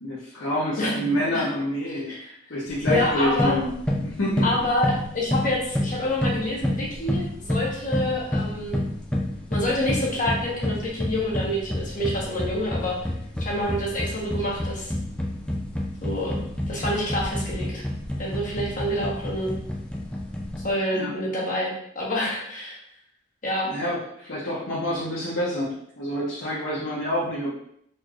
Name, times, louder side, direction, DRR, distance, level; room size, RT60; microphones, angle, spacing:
voice 1, 0.0-3.7 4.0-4.6 20.9-21.1 23.7-27.6, equal, 70° left, -8 dB, 0.8 m, -28 dB
voice 2, 0.8-1.5 2.1-2.3 2.9-3.6 4.4-8.9 9.5-12.9 13.4-14.9 16.0-16.4 16.7-17.8 18.2-19.5 20.6-22.8 23.4-23.7, left 1 dB, 40° left, -4 dB, 1.1 m, -27 dB
sound 1, 2.7-20.7, left 1 dB, 5° left, 0.4 m, -29 dB
4.1 x 3.2 x 2.4 m, 0.69 s
head